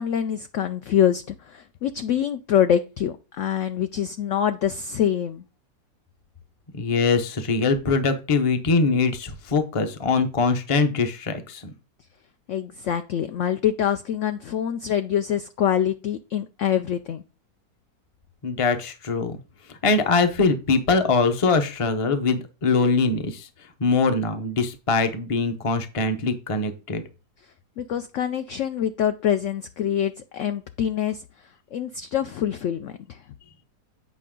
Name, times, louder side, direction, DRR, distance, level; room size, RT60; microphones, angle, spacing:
voice 1, 0.0-5.4 12.5-17.2 27.8-31.2 31.7-33.2, left 9 dB, 70° left, 9 dB, 0.7 m, -25 dB
voice 2, 6.7-11.7 18.4-19.4 19.8-23.5 23.8-27.0, left 4 dB, 30° left, 8 dB, 0.6 m, -22 dB
8.4 x 5.2 x 3.7 m, 0.33 s
omnidirectional pair, 1.7 m